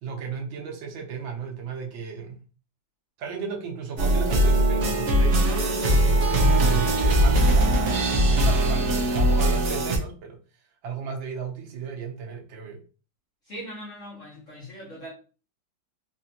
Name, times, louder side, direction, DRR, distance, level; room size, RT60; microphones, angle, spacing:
voice 1, 0.0-2.4 3.2-10.4 10.8-12.8, right 6 dB, 85° right, 1.7 m, -35 dB
sound 1, 4.0-10.0, right 1 dB, 55° right, 0.8 m, -20 dB
voice 2, 13.5-15.1, equal, 45° left, 1.3 m, -40 dB
4.1 x 2.6 x 2.8 m
omnidirectional pair, 2.1 m